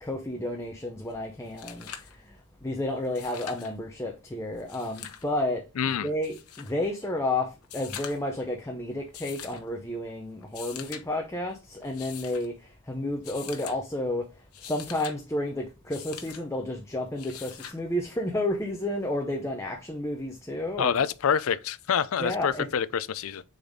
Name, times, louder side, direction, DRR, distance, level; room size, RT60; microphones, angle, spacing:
voice 1, 0.0-5.6 6.0-14.3 14.6-21.0 22.2-22.7, left 1 dB, 15° left, 0.7 m, -31 dB
sound 1, 1.1-1.2 1.4-2.2 3.0-3.7 4.6-5.3 6.2-6.7 7.6-8.4 9.1-9.6 10.4-11.0 11.8-12.5 13.2-13.8 14.4-15.2 15.9-16.4 17.2-17.8 19.2-19.3, left 9 dB, 90° left, 1.0 m, -43 dB
voice 2, 5.8-6.1 20.8-23.4, left 7 dB, 70° left, 0.4 m, -27 dB
6.6 x 4.1 x 3.6 m
head